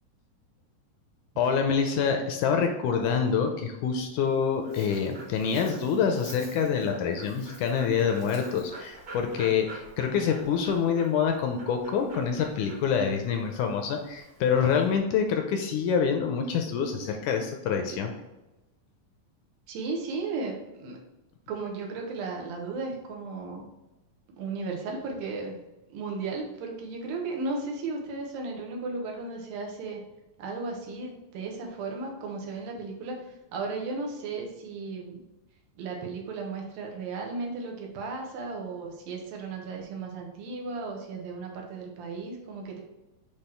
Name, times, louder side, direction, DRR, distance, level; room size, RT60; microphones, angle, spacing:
voice 1, 1.4-18.1, left 6 dB, 75° left, 4 dB, 1.9 m, -26 dB
Dog, 4.2-15.0, right 2 dB, 40° right, 1.3 m, -47 dB
voice 2, 19.7-21.0 21.5-23.7 24.4-25.6 25.9-30.0 30.4-33.2 33.5-35.2 35.8-42.8, right 3 dB, 85° right, 0 dB, 2.9 m, -35 dB
8.1 x 3.1 x 4.4 m, 1.0 s
omnidirectional pair, 4.1 m